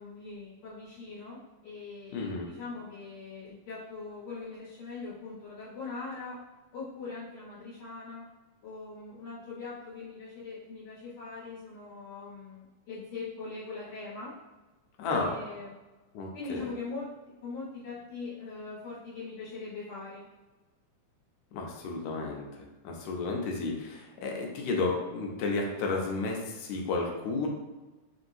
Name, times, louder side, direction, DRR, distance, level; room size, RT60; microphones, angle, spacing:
voice 1, 0.0-6.4 6.7-8.3 8.6-14.3 15.1-15.8 16.3-20.3, left 4 dB, 60° left, -13 dB, 2.4 m, -41 dB
voice 2, 2.1-2.5 15.0-15.3 16.1-16.7 21.5-22.5 22.8-27.5, left 3 dB, 75° left, 0 dB, 2.0 m, -32 dB
6.0 x 2.8 x 2.6 m, 1.2 s
omnidirectional pair, 3.7 m